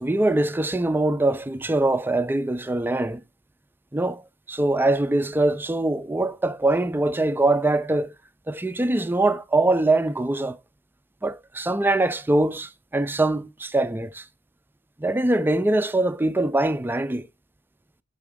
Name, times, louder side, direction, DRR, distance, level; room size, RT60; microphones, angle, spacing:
voice 1, 0.0-3.2 3.9-4.2 4.5-8.1 8.5-10.6 11.2-14.2 15.0-17.3, right 2 dB, 10° right, 0.4 m, -23 dB
7.0 x 3.6 x 5.0 m
head